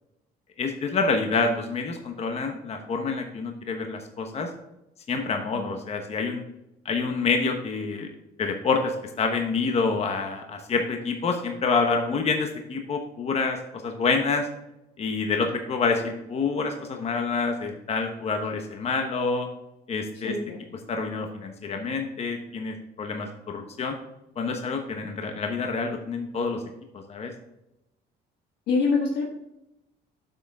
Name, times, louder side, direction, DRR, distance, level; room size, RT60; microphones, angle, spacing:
voice 1, 0.6-4.5 5.1-6.4 6.8-8.1 8.4-13.6 13.8-14.5 15.0-19.5 19.9-20.3 20.9-24.0 24.4-26.6 26.9-27.3, left 4 dB, 40° left, 4 dB, 1.1 m, -27 dB
voice 2, 20.2-20.6 28.7-29.3, left 4 dB, 80° left, -1 dB, 1.4 m, -25 dB
8.0 x 6.4 x 3.5 m, 0.90 s
cardioid pair, 110°, 17 cm